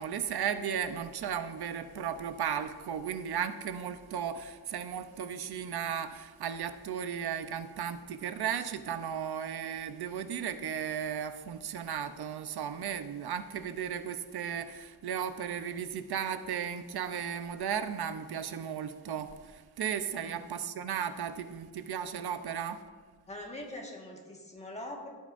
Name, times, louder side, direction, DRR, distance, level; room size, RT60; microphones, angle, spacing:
voice 1, 0.0-22.8, right 8 dB, 85° right, 10 dB, 0.7 m, -35 dB
voice 2, 20.1-20.5 23.3-25.1, left 1 dB, 20° left, 0 dB, 1.5 m, -43 dB
16.5 x 8.8 x 2.5 m, 1.4 s
wide cardioid pair, 175°, 37 cm